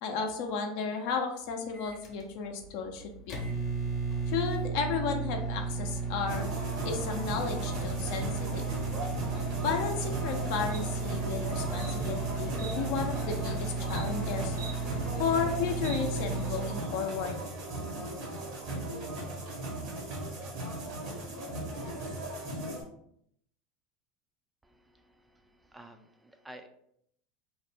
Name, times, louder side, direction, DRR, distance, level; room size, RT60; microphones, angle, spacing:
voice 1, 0.0-3.3 4.3-6.5 6.8-8.6 9.6-14.6 15.2-17.4, left 6 dB, 65° left, 4 dB, 0.5 m, -33 dB
Microwave oven, 1.7-16.8, right 4 dB, 45° left, 0.8 m, -34 dB
sound 1, 6.3-22.8, right 1 dB, 60° right, 1.0 m, -37 dB
Insect, 10.7-16.6, right 4 dB, 90° right, 0.9 m, -50 dB
voice 2, 24.6-26.7, right 1 dB, 10° right, 6 dB, 0.3 m, -52 dB
2.5 x 2.0 x 3.4 m, 0.71 s
hypercardioid pair, 100°, 0 cm